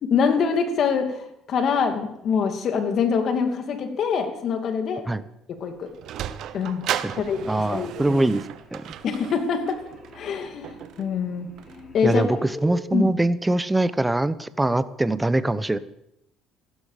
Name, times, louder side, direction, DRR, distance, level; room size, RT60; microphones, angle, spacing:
voice 1, 0.0-5.0 5.5-5.9 6.5-6.8 7.2-8.2 9.0-9.8 10.1-11.5 11.9-12.5 12.9-13.1, left 6 dB, 55° left, 5 dB, 2.6 m, -25 dB
Sliding door, 5.6-12.2, right 11 dB, 65° right, 0.9 m, -36 dB
voice 2, 7.5-8.4 8.7-8.8 12.0-15.8, right 2 dB, 10° right, 15 dB, 0.9 m, -23 dB
sound 1, 7.7-12.8, equal, 30° left, 5.1 m, -45 dB
15.0 x 13.0 x 5.1 m, 0.79 s
supercardioid pair, 80°, 0 cm